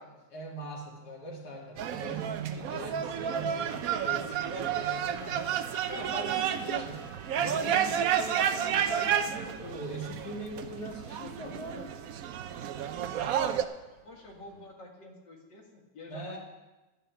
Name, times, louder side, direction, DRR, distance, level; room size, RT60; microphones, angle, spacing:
voice 1, 0.3-7.0 7.4-11.9 16.1-16.4, right 1 dB, 65° left, -1 dB, 2.7 m, -41 dB
sound 1, 1.8-13.6, right 9 dB, 65° right, 1.0 m, -31 dB
Truck / Alarm, 2.8-14.7, right 3 dB, 85° right, 1.8 m, -51 dB
voice 2, 12.9-13.7 14.0-16.4, left 2 dB, 85° left, 0 dB, 2.5 m, -49 dB
11.5 x 9.5 x 5.8 m, 1.1 s
omnidirectional pair, 1.9 m